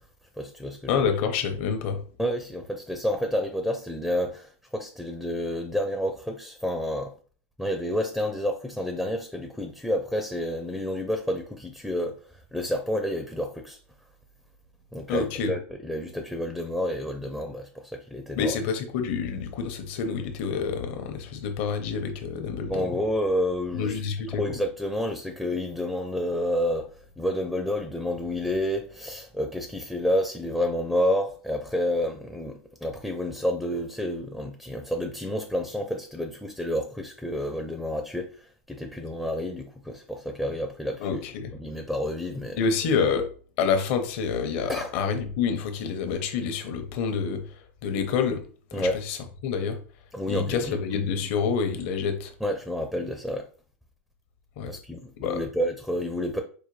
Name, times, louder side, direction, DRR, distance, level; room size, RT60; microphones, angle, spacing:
voice 1, 0.4-1.1 2.2-7.1 7.6-12.2 12.5-13.8 14.9-18.6 22.6-23.9 24.3-38.4 38.7-41.2 41.6-42.6 44.7-44.9 48.7-49.0 50.1-50.8 52.4-53.5 54.7-56.4, equal, ahead, 0.4 m, -29 dB
voice 2, 0.9-2.0 15.1-15.5 18.4-23.0 23.7-24.6 41.0-41.5 42.6-43.3 43.6-48.4 48.7-49.8 50.3-52.3 54.6-54.8 55.2-55.4, left 6 dB, 55° left, 0.8 m, -28 dB
4.8 x 2.2 x 3.2 m
supercardioid pair, 130°, 7 cm